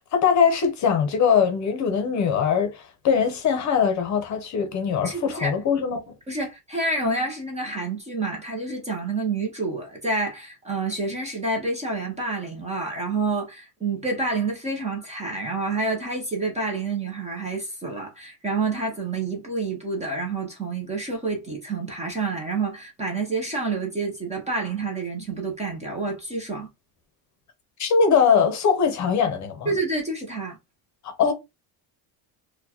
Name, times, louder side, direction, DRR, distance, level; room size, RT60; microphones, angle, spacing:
voice 1, 0.1-6.1 27.8-29.7 31.2-31.3, left 6 dB, 40° left, 0.8 m, -21 dB
voice 2, 5.0-5.6 6.3-26.7 29.7-30.6, right 3 dB, 15° right, 0.6 m, -28 dB
4.2 x 2.3 x 2.8 m
cardioid pair, 170°, 45 cm